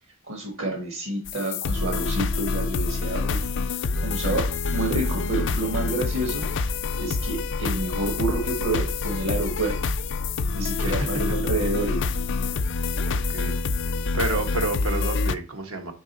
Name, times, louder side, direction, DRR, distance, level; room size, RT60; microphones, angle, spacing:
voice 1, 0.3-3.5 4.0-6.4 7.0-9.8 10.5-12.1, right 2 dB, 65° right, 1.3 m, -29 dB
sound 1, 1.3-15.4, left 4 dB, 60° left, 0.4 m, -27 dB
voice 2, 10.8-11.2 13.1-13.6 14.1-15.9, right 2 dB, 85° right, 1.3 m, -30 dB
5.1 x 4.7 x 4.0 m
head